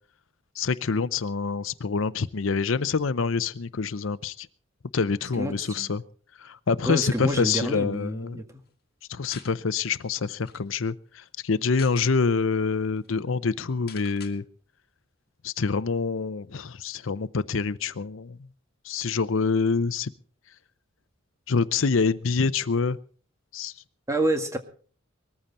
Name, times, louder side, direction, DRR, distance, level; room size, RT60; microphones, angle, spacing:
voice 1, 0.6-4.5 4.9-6.0 6.4-8.4 9.1-14.4 15.4-18.4 18.8-20.1 21.5-23.0 23.5-23.7, left 4 dB, 75° left, 16 dB, 0.6 m, -26 dB
voice 2, 5.4-5.9 6.9-8.6 24.1-24.6, right 1 dB, 15° right, 5 dB, 1.9 m, -28 dB
sound 1, 9.3-9.6 10.0-10.1 10.4-10.6 11.5-12.1 12.6-12.7 13.0-13.1 13.9-14.4, left 9 dB, 55° left, 1.9 m, -45 dB
20.0 x 14.5 x 4.2 m, 0.43 s
head